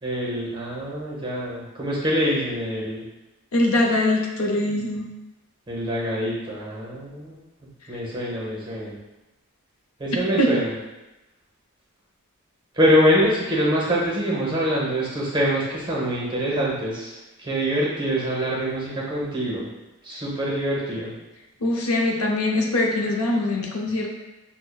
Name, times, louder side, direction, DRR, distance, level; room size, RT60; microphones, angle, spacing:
voice 1, 0.0-3.0 5.7-7.3 7.9-9.0 10.0-10.7 12.8-17.1 17.4-19.7 20.0-21.1, equal, 20° right, -5 dB, 0.8 m, -24 dB
voice 2, 3.5-5.1 10.4-10.5 21.6-24.1, left 1 dB, 75° left, 0 dB, 0.6 m, -22 dB
6.1 x 2.1 x 2.2 m, 1.0 s
head